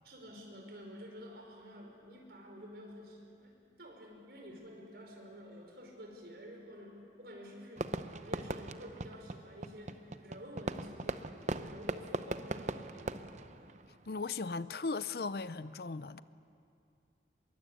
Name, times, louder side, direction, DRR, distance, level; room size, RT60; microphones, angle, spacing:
voice 1, 0.0-7.9 8.2-13.3, equal, 65° right, 5.1 m, -50 dB
Fireworks, 7.8-14.3, right 2 dB, 40° right, 0.7 m, -40 dB
voice 2, 14.1-16.2, left 4 dB, 60° left, 0.6 m, -37 dB
24.0 x 22.5 x 8.3 m
head